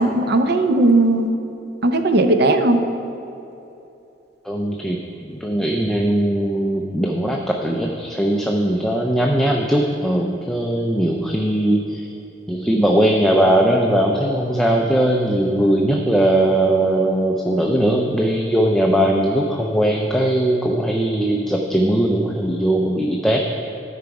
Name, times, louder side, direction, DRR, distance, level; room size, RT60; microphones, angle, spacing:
voice 1, 0.0-1.3 1.8-2.8, right 2 dB, 60° right, 7 dB, 0.6 m, -17 dB
voice 2, 4.5-12.1 12.5-23.4, right 1 dB, 5° left, 0 dB, 0.4 m, -19 dB
13.0 x 5.1 x 4.7 m, 2.8 s
head